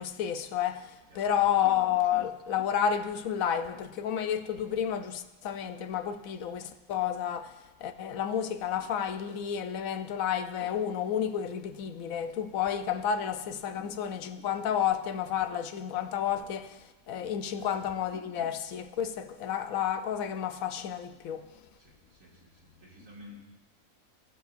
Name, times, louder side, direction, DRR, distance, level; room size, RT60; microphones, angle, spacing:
voice 1, 0.0-21.5, left 9 dB, 85° left, 1.1 m, -31 dB
voice 2, 21.8-23.4, left 2 dB, 70° right, 2.6 m, -52 dB
20.5 x 7.1 x 2.5 m
omnidirectional pair, 1.4 m